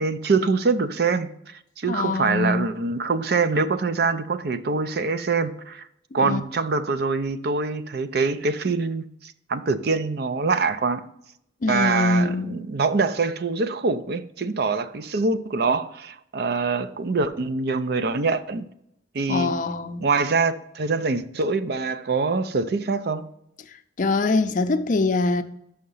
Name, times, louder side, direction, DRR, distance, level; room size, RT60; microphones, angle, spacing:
voice 1, 0.0-5.9 6.1-11.1 11.7-18.7 19.1-19.5 20.0-23.3, right 4 dB, 60° right, 0.5 m, -24 dB
voice 2, 1.9-2.7 6.2-6.4 11.6-12.6 19.3-20.0 23.7-25.4, left 3 dB, 45° left, 0.5 m, -23 dB
6.3 x 5.8 x 5.5 m
head